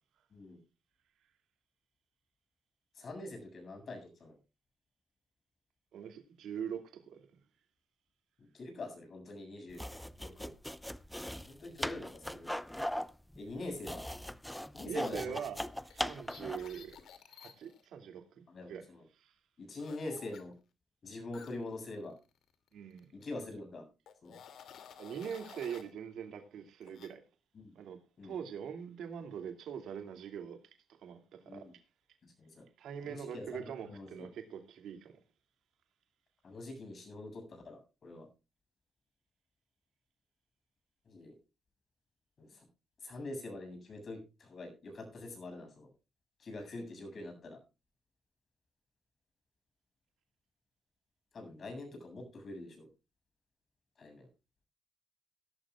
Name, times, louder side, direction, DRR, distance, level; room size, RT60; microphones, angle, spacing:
voice 1, 2.9-4.3 8.4-9.8 10.2-10.5 11.5-12.5 13.3-14.0 14.7-15.4 18.5-19.0 19.6-20.5 21.0-22.1 23.1-23.8 24.2-24.3 27.5-27.7 28.2-28.4 31.5-31.7 32.4-32.7 33.0-34.3 36.4-38.3 41.1-41.3 42.4-42.6 43.0-45.9 46.4-47.6 51.3-52.9 54.0-54.3, left 2 dB, 45° left, 7.6 m, -44 dB
voice 2, 5.9-7.2 14.8-15.6 15.8-17.0 17.4-18.9 19.2-19.3 22.7-23.1 25.0-27.2 27.7-30.6 31.0-31.7 32.8-35.1, right 8 dB, 75° right, 2.6 m, -43 dB
sound 1, 9.7-16.8, equal, 5° left, 0.7 m, -40 dB
sound 2, 15.8-17.8 19.8-20.4 21.3-22.7 23.0-23.2 24.1-25.9 26.8-27.1, left 8 dB, 70° left, 2.6 m, -54 dB
17.5 x 12.0 x 2.4 m
cardioid pair, 90°, 0 cm